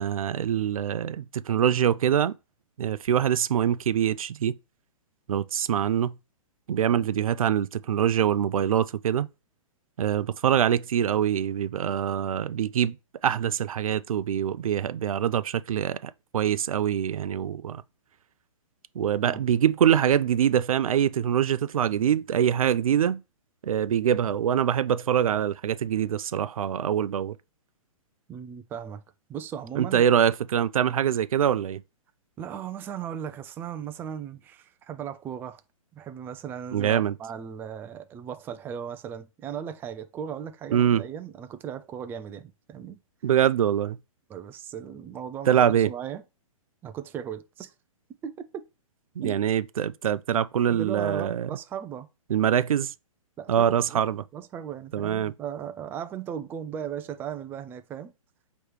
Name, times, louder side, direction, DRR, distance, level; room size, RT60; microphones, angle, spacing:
voice 1, 0.0-2.3 2.8-4.6 5.3-6.2 6.7-9.3 10.0-13.0 13.2-17.8 19.0-23.2 23.6-27.3 29.8-31.8 36.7-37.1 40.7-41.1 43.2-44.0 45.5-45.9 49.2-51.5 52.3-52.9 53.5-54.2 54.9-55.3, right 9 dB, 80° right, 0.4 m, -24 dB
voice 2, 28.3-29.0 29.3-30.0 32.4-35.6 35.9-43.0 44.3-46.2 46.8-47.7 48.2-48.6 49.2-49.4 50.7-52.1 53.4-54.0 54.3-58.1, right 8 dB, 10° right, 0.3 m, -37 dB
4.5 x 3.0 x 3.2 m
hypercardioid pair, 135°, 18 cm